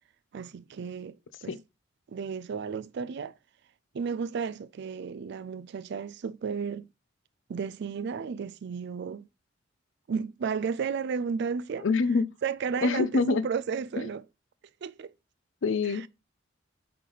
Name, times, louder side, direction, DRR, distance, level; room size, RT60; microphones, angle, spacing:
voice 1, 0.3-1.2 1.4-1.6 2.1-3.3 3.9-6.9 7.5-9.3 10.1-11.9 12.4-14.2 14.8-15.1 15.9-16.1, right 6 dB, 60° right, 0.4 m, -33 dB
voice 2, 11.8-12.3 12.8-13.4 14.0-14.1 15.6-16.1, left 4 dB, 80° left, 0.5 m, -25 dB
7.7 x 3.3 x 3.9 m
head